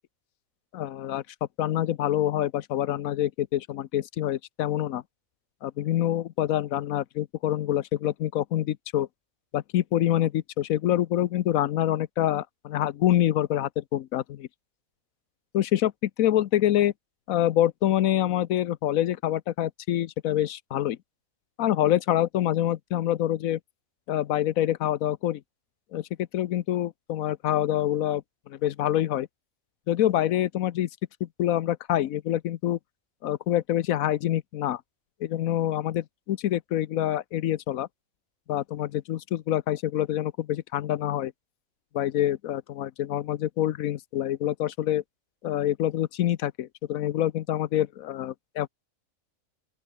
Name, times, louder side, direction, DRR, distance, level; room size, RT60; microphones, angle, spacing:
voice 1, 0.7-1.2 1.6-5.0 5.6-9.1 9.5-14.5 15.5-16.9 17.3-21.0 21.6-23.6 24.1-25.4 25.9-29.3 29.9-30.9 31.2-32.8 33.2-34.8 35.2-37.9 38.5-41.3 41.9-45.0 45.4-48.7, left 12 dB, 80° left, 1.1 m, -26 dB
open air
omnidirectional pair, 1.4 m